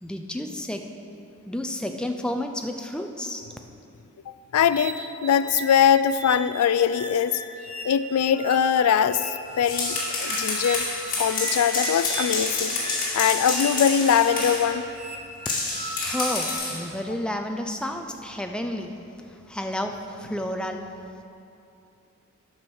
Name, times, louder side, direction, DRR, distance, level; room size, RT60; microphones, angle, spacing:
voice 1, 0.0-0.8 1.5-3.4 15.5-15.7 16.0-18.9 19.5-20.8, left 1 dB, 5° left, 4 dB, 0.4 m, -31 dB
voice 2, 4.3-7.4 7.8-10.9 11.2-12.8 13.1-14.8, left 8 dB, 90° left, 14 dB, 0.3 m, -22 dB
sound 1, 4.7-16.6, right 2 dB, 30° right, 0.9 m, -38 dB
sound 2, 9.5-14.7 15.4-16.8, left 3 dB, 40° left, 2.0 m, -28 dB
9.3 x 6.0 x 6.2 m, 2.8 s
head